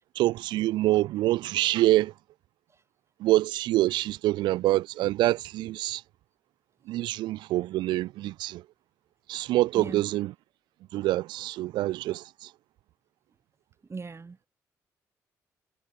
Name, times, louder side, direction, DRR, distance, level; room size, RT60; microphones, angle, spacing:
voice 1, 0.1-2.1 3.2-6.0 6.8-8.6 9.3-10.3 10.9-12.5, right 16 dB, 80° right, 1.7 m, -26 dB
voice 2, 13.9-14.5, right 4 dB, 35° right, 5.0 m, -37 dB
supercardioid pair, 55°, 8 cm